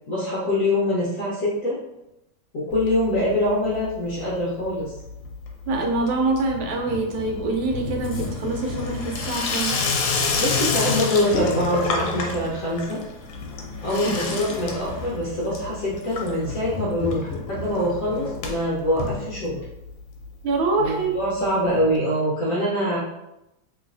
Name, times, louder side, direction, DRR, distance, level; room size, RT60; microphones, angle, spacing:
voice 1, 0.1-1.8 2.5-5.0 10.4-13.0 13.8-19.6 20.8-23.0, left 1 dB, 65° left, -6 dB, 0.8 m, -24 dB
Water tap faucet / Sink (filling or washing), 2.7-3.5 3.7-4.3 4.6-19.9 20.2-20.3 20.5-20.6 20.8-20.9 21.9-22.0, left 4 dB, 90° left, 1.4 m, -29 dB
voice 2, 5.7-9.7 14.0-14.1 20.4-21.2, right 3 dB, 85° right, 1 dB, 1.5 m, -25 dB
3.0 x 3.0 x 2.6 m, 0.90 s
omnidirectional pair, 2.2 m